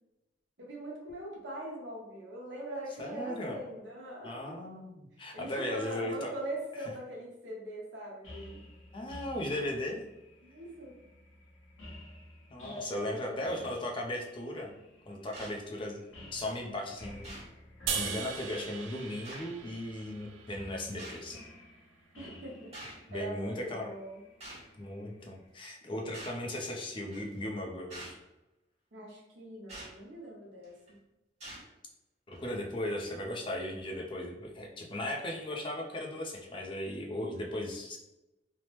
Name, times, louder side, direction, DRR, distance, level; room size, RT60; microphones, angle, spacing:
voice 1, 0.6-4.3 5.3-8.6 10.4-11.0 12.6-13.8 22.2-24.2 28.9-30.7, right 1 dB, 70° right, -3 dB, 0.9 m, -42 dB
voice 2, 3.0-3.6 4.2-6.3 6.8-6.9 8.9-10.0 12.5-14.7 15.1-16.0 16.3-17.3 17.9-21.4 23.1-23.9 24.8-28.2 32.3-38.0, left 1 dB, 25° left, 0 dB, 0.4 m, -37 dB
sound 1, 8.2-25.5, left 1 dB, 85° left, 1.0 m, -53 dB
sound 2, 15.3-15.6 16.5-16.6 17.2-17.5 18.5-18.6 19.2-19.5 21.0-21.3 22.7-23.0 24.4-24.7 26.1-26.4 27.1-27.3 27.9-28.2 29.7-29.9 30.6-30.9 31.4-31.6 32.3-32.4, right 1 dB, 35° right, 1.4 m, -45 dB
sound 3, 17.9-21.1, right 6 dB, 90° right, 0.4 m, -38 dB
3.2 x 2.0 x 2.9 m, 0.96 s
head